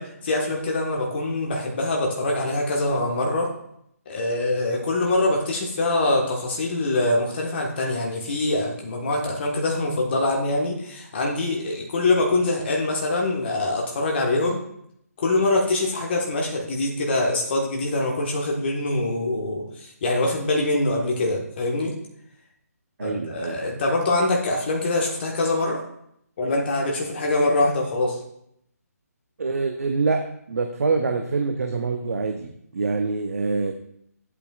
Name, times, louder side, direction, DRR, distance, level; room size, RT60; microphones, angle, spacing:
voice 1, 0.0-3.5 4.1-14.6 15.2-21.9 23.0-25.8 26.4-28.2, left 2 dB, 40° left, -1 dB, 1.5 m, -24 dB
voice 2, 23.0-23.8 29.4-30.2 30.5-33.7, right 4 dB, 60° right, 5 dB, 0.8 m, -25 dB
10.5 x 8.4 x 2.4 m, 0.73 s
figure-of-eight pair, 145°, 9 cm